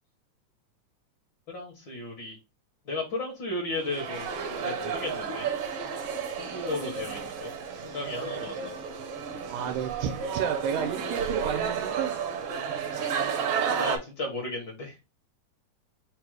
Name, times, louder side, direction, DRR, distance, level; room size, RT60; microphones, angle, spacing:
voice 1, 1.5-2.4 2.9-4.3 4.6-5.5 6.4-7.5 7.8-8.7 13.7-14.9, left 2 dB, 70° left, 0 dB, 1.0 m, -34 dB
sound 1, 3.7-14.0, right 6 dB, 75° right, 1.4 m, -32 dB
voice 2, 9.5-12.2, right 8 dB, 90° right, 5 dB, 2.2 m, -32 dB
5.0 x 2.0 x 4.6 m, 0.27 s
omnidirectional pair, 3.7 m